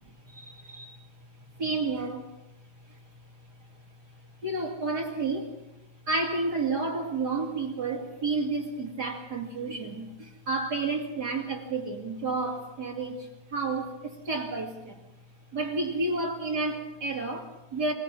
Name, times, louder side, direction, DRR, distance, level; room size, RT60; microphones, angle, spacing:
voice 1, 0.3-1.0 1.6-2.3 4.4-5.6 6.1-15.0 15.5-17.9, right 3 dB, 35° right, 2 dB, 2.5 m, -31 dB
26.0 x 19.0 x 6.0 m, 0.91 s
omnidirectional pair, 3.4 m